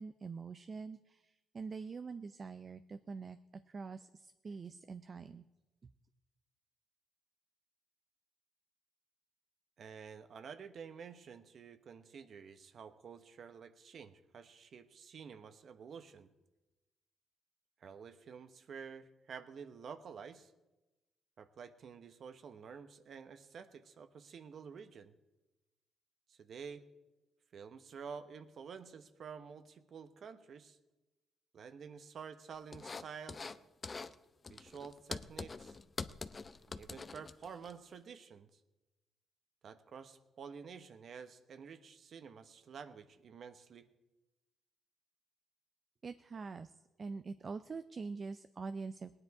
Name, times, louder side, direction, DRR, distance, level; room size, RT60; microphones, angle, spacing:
voice 1, 0.0-3.4 3.7-5.4 5.8-5.9 46.0-49.1, right 4 dB, 40° right, 10 dB, 0.5 m, -45 dB
voice 2, 9.8-16.3 17.8-20.5 21.4-25.1 26.3-26.8 27.5-30.8 31.5-33.5 34.5-35.8 36.7-38.6 39.6-43.9, right 6 dB, 55° right, 10 dB, 1.0 m, -50 dB
sound 1, 32.7-33.6 33.8-34.2 34.4-37.7, left 4 dB, 30° left, 0.5 m, -44 dB
18.5 x 9.8 x 4.8 m, 1.0 s
cardioid pair, 90°, 0 cm